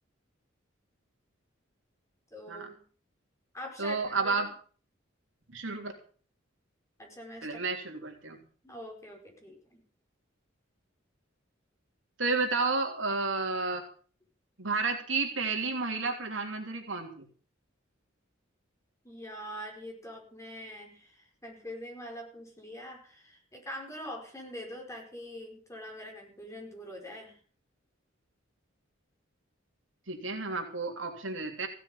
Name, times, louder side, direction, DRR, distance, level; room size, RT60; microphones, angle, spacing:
voice 1, 2.3-2.8 3.5-4.5 7.0-7.6 8.6-9.8 19.0-27.4, equal, 15° left, 1 dB, 5.1 m, -44 dB
voice 2, 3.8-4.5 5.5-5.9 7.4-8.4 12.2-13.8 14.6-17.2 30.1-31.7, right 3 dB, 70° right, 2 dB, 3.3 m, -31 dB
16.5 x 7.6 x 8.7 m, 0.43 s
head